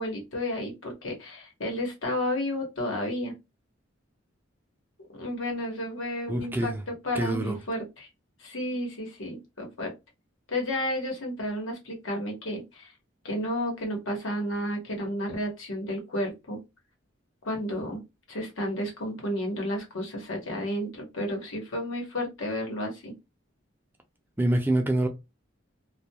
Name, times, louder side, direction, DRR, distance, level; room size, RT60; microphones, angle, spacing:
voice 1, 0.0-3.3 5.1-8.1 8.4-9.9 10.5-12.9 13.2-16.6 17.4-18.0 18.3-23.1, left 1 dB, 85° left, 1.1 m, -32 dB
voice 2, 6.3-6.8 7.1-7.6 24.4-25.1, right 1 dB, 10° right, 0.4 m, -25 dB
2.4 x 2.2 x 2.8 m
head